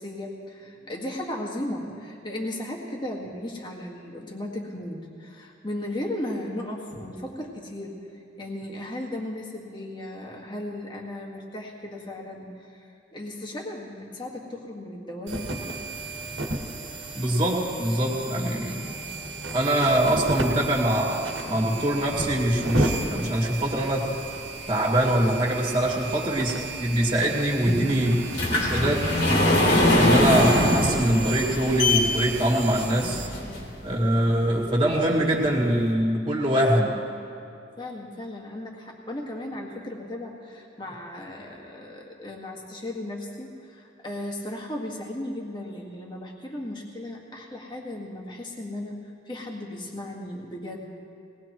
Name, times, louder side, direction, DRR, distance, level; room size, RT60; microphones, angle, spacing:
voice 1, 0.0-7.9 8.4-15.6 33.4-34.0 37.8-51.0, left 1 dB, 25° left, -2 dB, 1.8 m, -36 dB
sound 1, 15.3-33.3, right 2 dB, 85° right, 1.7 m, -33 dB
voice 2, 17.2-18.9 19.5-24.2 24.7-28.3 28.5-29.2 29.8-33.2 33.8-37.0, right 1 dB, 25° right, -2 dB, 2.2 m, -23 dB
sound 2, 27.7-33.8 34.4-34.5 35.0-35.1 35.4-35.5, left 1 dB, 60° left, 2.8 m, -22 dB
21.5 x 19.0 x 3.1 m, 2.7 s
head